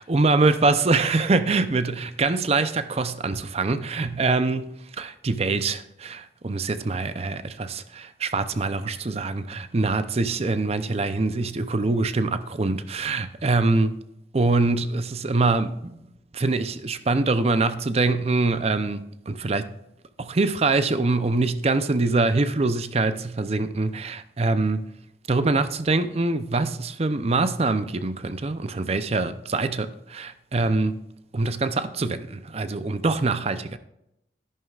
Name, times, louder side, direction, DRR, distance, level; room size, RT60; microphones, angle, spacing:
voice 1, 0.0-4.7 4.9-14.0 14.3-16.0 16.3-19.7 20.2-24.9 25.3-31.0 31.3-33.8, right 3 dB, 35° right, 0.5 m, -24 dB
12.5 x 11.0 x 2.4 m
head